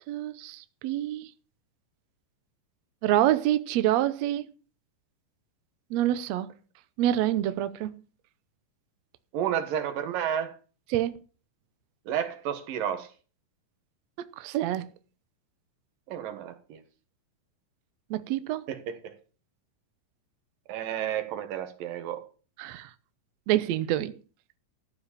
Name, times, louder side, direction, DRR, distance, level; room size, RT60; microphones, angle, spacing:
voice 1, 0.1-1.3 3.0-4.4 5.9-6.5 7.0-7.9 10.9-11.2 14.2-14.9 18.1-18.6 22.6-22.9 23.5-24.2, right 13 dB, 70° right, 1.7 m, -27 dB
voice 2, 9.3-10.6 12.1-13.1 16.1-16.8 18.7-19.2 20.7-22.3, right 9 dB, 90° right, 3.1 m, -31 dB
14.0 x 5.0 x 8.5 m
omnidirectional pair, 3.8 m